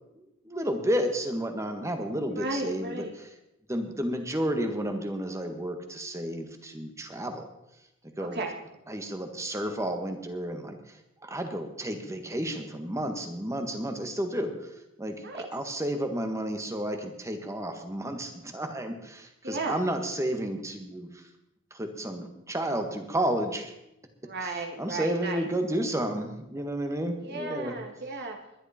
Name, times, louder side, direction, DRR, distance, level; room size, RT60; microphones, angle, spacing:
voice 1, 0.1-3.0 3.7-7.5 8.2-8.4 8.9-11.0 11.2-14.7 15.0-21.2 21.7-23.7 24.8-27.7, right 1 dB, 15° right, 6 dB, 1.6 m, -31 dB
voice 2, 2.3-3.1 8.2-8.5 15.2-15.5 19.4-19.8 24.2-25.5 27.2-28.4, right 2 dB, 50° right, 2 dB, 2.2 m, -34 dB
21.0 x 11.0 x 4.4 m, 0.88 s
head